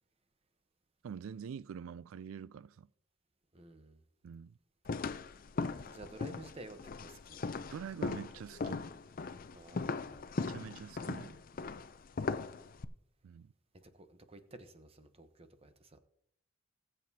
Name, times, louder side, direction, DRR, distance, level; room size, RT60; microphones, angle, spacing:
voice 1, 1.0-2.9 4.2-4.5 7.7-8.8 10.4-11.4 13.2-13.5, right 7 dB, 80° right, 0.3 m, -45 dB
voice 2, 3.5-4.0 5.8-7.4 9.5-10.3 13.7-16.0, right 2 dB, 30° right, 0.9 m, -52 dB
sound 1, 4.9-12.8, left 4 dB, 45° left, 0.5 m, -39 dB
20.0 x 7.7 x 2.8 m
head